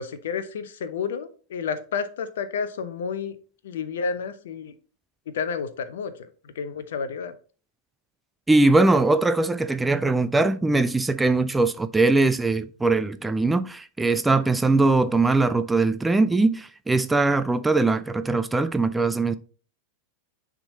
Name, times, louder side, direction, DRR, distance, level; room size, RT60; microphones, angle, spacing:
voice 1, 0.0-3.4 3.6-4.7 5.3-6.1 6.6-7.3, left 6 dB, 60° left, 0.8 m, -30 dB
voice 2, 8.5-19.3, right 3 dB, 10° right, 0.4 m, -21 dB
9.8 x 3.7 x 2.7 m
figure-of-eight pair, 90°, 0 cm